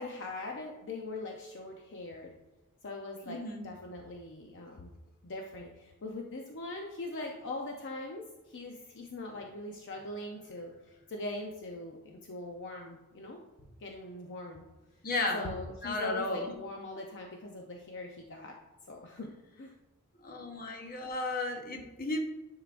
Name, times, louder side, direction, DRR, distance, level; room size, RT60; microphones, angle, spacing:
voice 1, 0.0-2.3 2.8-4.9 5.2-13.4 13.8-14.6 15.3-18.6 18.9-19.3 19.6-19.7, left 2 dB, 60° left, 1 dB, 0.7 m, -41 dB
voice 2, 3.3-3.7 15.0-15.5 15.8-16.5 20.2-22.2, left 2 dB, 45° left, 3 dB, 1.0 m, -34 dB
10.0 x 4.8 x 2.5 m, 1.1 s
head